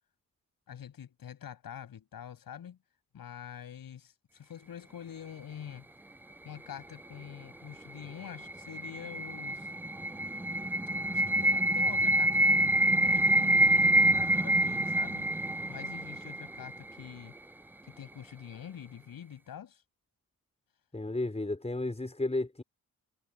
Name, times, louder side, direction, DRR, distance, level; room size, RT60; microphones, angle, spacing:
voice 1, 0.7-2.8 3.1-5.9 6.4-9.7 11.1-15.3 15.7-17.3 17.9-19.8, left 9 dB, 85° left, 8.0 m, -46 dB
sound 1, 8.0-17.0, right 1 dB, 5° right, 0.3 m, -27 dB
voice 2, 20.9-22.6, left 2 dB, 20° left, 4.3 m, -33 dB
cardioid pair, 50°, 34 cm